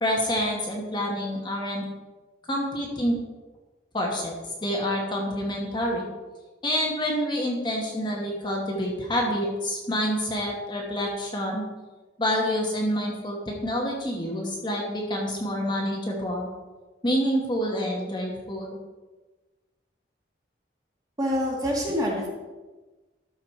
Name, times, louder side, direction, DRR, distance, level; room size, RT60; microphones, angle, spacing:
voice 1, 0.0-1.8 2.5-3.2 3.9-6.1 6.6-11.6 12.2-16.5 17.0-18.8, equal, 25° left, -1 dB, 1.3 m, -27 dB
voice 2, 21.2-22.3, equal, 20° right, -3 dB, 2.0 m, -26 dB
12.5 x 4.8 x 4.5 m, 1.2 s
head